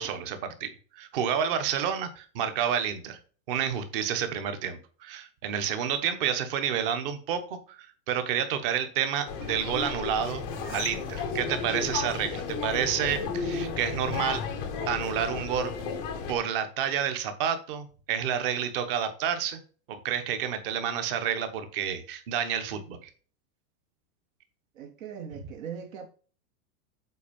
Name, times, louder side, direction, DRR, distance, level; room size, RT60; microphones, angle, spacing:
voice 1, 0.0-3.2 3.5-10.4 10.7-14.4 14.9-15.7 16.3-19.6 19.9-23.1, right 8 dB, 35° right, 1.2 m, -29 dB
sound 1, 9.3-16.3, left 5 dB, 10° left, 0.5 m, -33 dB
voice 2, 24.7-26.1, right 7 dB, 55° right, 1.0 m, -40 dB
8.3 x 4.5 x 5.3 m
supercardioid pair, 180°, 49 cm